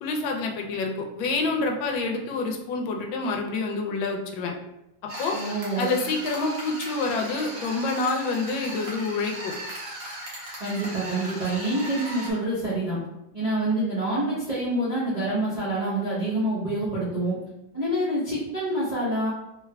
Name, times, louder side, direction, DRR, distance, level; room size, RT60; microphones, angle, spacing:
voice 1, 0.0-4.5 5.2-5.4 5.8-9.5, left 3 dB, 80° left, 2 dB, 1.3 m, -27 dB
sound 1, 5.1-12.3, right 1 dB, 60° right, 1.6 m, -37 dB
voice 2, 5.3-5.9 10.6-13.0 13.3-17.4 17.7-19.3, right 1 dB, 35° right, -10 dB, 0.6 m, -27 dB
3.5 x 3.3 x 2.2 m, 0.89 s
omnidirectional pair, 2.2 m